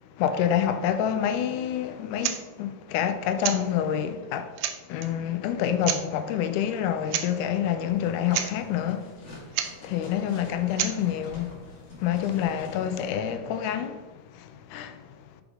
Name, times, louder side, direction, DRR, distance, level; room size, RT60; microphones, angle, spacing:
voice 1, 0.2-4.5 4.9-9.1 9.6-11.6 12.0-14.0 14.3-15.0, left 9 dB, 90° left, 2.1 m, -27 dB
sound 1, 2.2-2.4 3.4-3.6 4.2-4.3 4.6-5.1 5.8-6.0 7.1-7.3 7.5-7.6 8.0-8.1 8.3-8.5 9.5-9.7 10.8-11.0, right 10 dB, 80° right, 1.7 m, -29 dB
sound 2, 7.9-13.1, left 1 dB, 40° left, 2.1 m, -48 dB
5.3 x 4.9 x 4.8 m
omnidirectional pair, 3.5 m